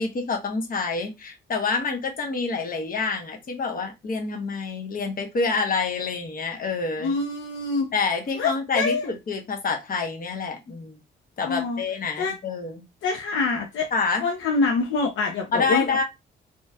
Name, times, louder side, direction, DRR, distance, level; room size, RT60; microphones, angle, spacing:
voice 1, 0.0-7.1 7.9-11.0 11.4-12.8 13.9-14.2 15.5-16.0, left 4 dB, 45° left, 1.1 m, -27 dB
voice 2, 7.0-7.9 8.4-9.1 11.4-11.8 12.2-12.3 13.0-13.9 14.2-15.9, left 4 dB, 75° left, 0.7 m, -25 dB
4.0 x 3.1 x 2.4 m
cardioid pair, 90°, 20 cm